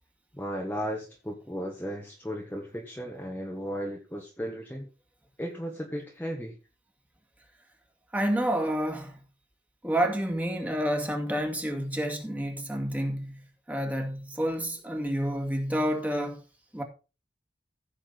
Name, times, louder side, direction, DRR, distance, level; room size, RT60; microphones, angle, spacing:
voice 1, 0.3-4.9 5.4-6.6, equal, 10° left, 1.4 m, -35 dB
voice 2, 8.1-9.1 9.8-13.4 13.7-16.4 16.7-16.8, equal, 10° right, 2.3 m, -29 dB
15.5 x 7.2 x 4.1 m
head